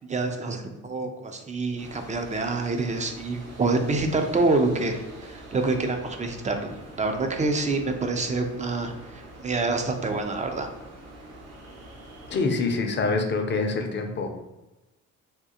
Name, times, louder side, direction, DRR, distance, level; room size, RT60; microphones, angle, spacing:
voice 1, 0.0-10.7, right 3 dB, 25° right, 5 dB, 0.4 m, -27 dB
sound 1, 1.8-12.5, right 1 dB, 55° right, 0.9 m, -45 dB
voice 2, 12.3-14.3, left 3 dB, 40° left, 5 dB, 0.6 m, -25 dB
3.5 x 2.4 x 2.8 m, 1.0 s
cardioid pair, 90°, 30 cm